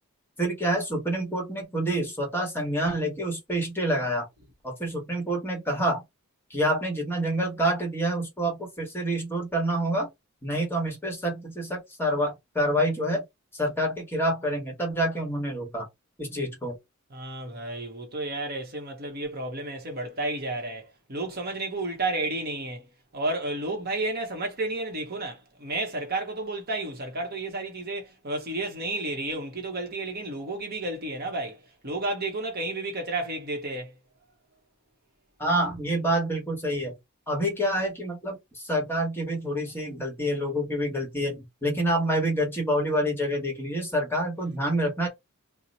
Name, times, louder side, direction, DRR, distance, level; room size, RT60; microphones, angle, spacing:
voice 1, 0.4-4.3 4.6-6.0 6.5-10.1 10.4-13.2 13.5-15.9 16.2-16.7 35.4-36.9 37.3-45.1, right 1 dB, 10° left, 1.1 m, -27 dB
voice 2, 17.1-34.0, right 2 dB, 45° right, 0.8 m, -32 dB
2.8 x 2.0 x 3.9 m
head